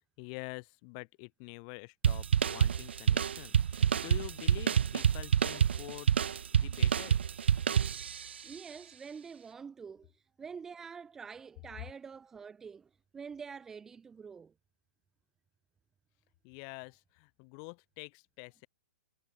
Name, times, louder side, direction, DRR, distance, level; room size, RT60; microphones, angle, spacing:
voice 1, 0.2-6.3 6.5-7.2 16.4-18.7, left 40 dB or more, 25° left, 7.4 m, -47 dB
sound 1, 2.0-8.4, right 8 dB, 70° right, 1.8 m, -28 dB
voice 2, 8.4-14.5, right 6 dB, 5° right, 4.1 m, -47 dB
hypercardioid pair, 175°, 6 cm